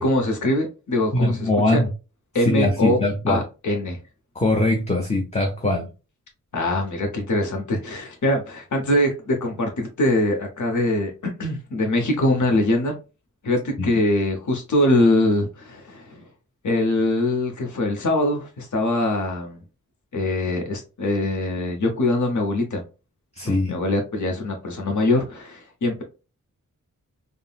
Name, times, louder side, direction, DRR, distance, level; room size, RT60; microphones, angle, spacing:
voice 1, 0.0-1.8 2.3-3.0 3.3-4.0 6.5-13.0 13.4-16.3 16.6-19.6 20.1-22.8 23.4-26.0, left 1 dB, 55° left, 0.9 m, -23 dB
voice 2, 1.1-1.9 2.5-3.4 4.4-5.9 23.4-23.8, left 2 dB, 20° left, 0.6 m, -21 dB
3.6 x 2.0 x 2.3 m
cardioid pair, 50°, 35 cm